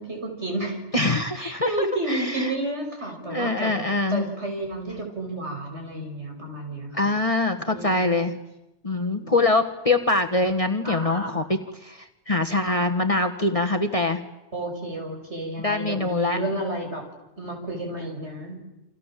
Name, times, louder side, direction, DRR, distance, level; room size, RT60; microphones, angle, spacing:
voice 1, 0.0-0.8 1.4-3.7 4.1-7.1 7.7-8.3 9.0-9.3 10.8-11.4 14.5-17.0 17.4-18.6, right 1 dB, 55° right, 2 dB, 6.6 m, -31 dB
voice 2, 0.9-2.5 3.2-4.2 6.9-8.3 8.8-11.4 11.8-14.2 15.6-16.4, left 2 dB, 25° left, 7 dB, 1.6 m, -24 dB
29.5 x 26.5 x 7.6 m, 0.91 s
omnidirectional pair, 1.3 m